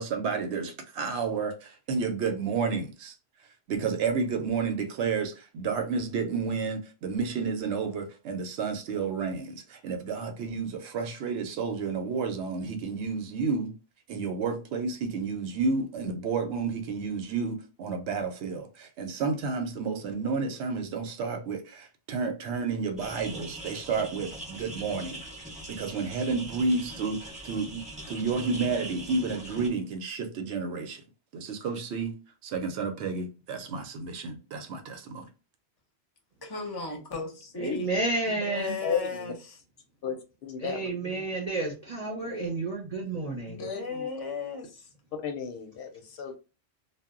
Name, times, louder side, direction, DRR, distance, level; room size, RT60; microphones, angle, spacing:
voice 1, 0.0-3.1 3.7-13.7 14.1-25.2 25.7-31.0 31.3-32.2 32.4-35.3, right 4 dB, 85° right, 0.9 m, -31 dB
sound 1, 23.0-29.7, right 1 dB, 5° right, 0.8 m, -42 dB
voice 2, 36.4-38.0 38.3-39.6 41.0-41.2 43.5-44.9, left 4 dB, 30° left, 0.5 m, -36 dB
voice 3, 37.6-38.8 40.6-43.6, right 2 dB, 45° right, 0.6 m, -31 dB
voice 4, 38.8-39.3 40.0-40.2 40.4-40.9 42.2-42.5 43.6-44.1 45.2-46.4, left 6 dB, 65° left, 0.7 m, -34 dB
2.1 x 2.0 x 3.5 m
omnidirectional pair, 1.1 m